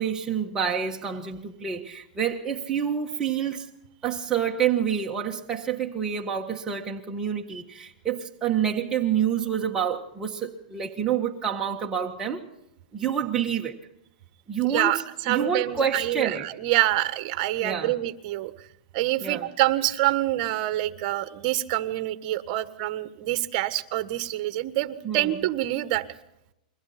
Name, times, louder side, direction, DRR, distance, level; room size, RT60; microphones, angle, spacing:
voice 1, 0.0-3.7 4.0-12.4 12.9-13.8 14.5-16.5 17.6-18.0 19.2-19.5 25.0-25.4, right 8 dB, 15° right, 1.6 m, -28 dB
voice 2, 15.3-18.5 18.9-26.0, right 15 dB, 45° right, 1.5 m, -26 dB
29.5 x 23.0 x 4.4 m
hypercardioid pair, 135°, 5 cm